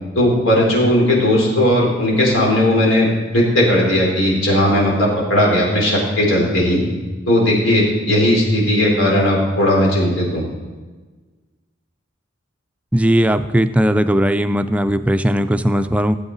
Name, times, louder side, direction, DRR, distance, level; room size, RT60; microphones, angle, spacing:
voice 1, 0.2-3.1 3.3-6.8 7.3-10.4, left 1 dB, 90° left, -3 dB, 3.9 m, -16 dB
voice 2, 12.9-16.2, equal, 5° right, 10 dB, 0.3 m, -17 dB
16.5 x 8.0 x 4.1 m, 1.3 s
head